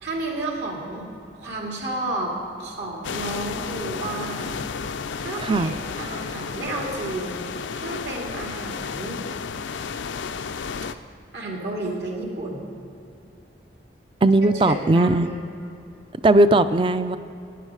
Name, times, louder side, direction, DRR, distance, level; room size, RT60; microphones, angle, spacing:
voice 1, 0.0-4.7 5.2-9.2 11.3-12.7 14.6-15.3, right 2 dB, 70° right, -1 dB, 2.4 m, -32 dB
sound 1, 3.0-10.9, left 5 dB, 90° left, 0.5 m, -32 dB
voice 2, 5.4-5.7 14.2-15.3 16.2-17.2, right 2 dB, 30° right, 12 dB, 0.4 m, -18 dB
17.0 x 10.0 x 4.8 m, 2.8 s
head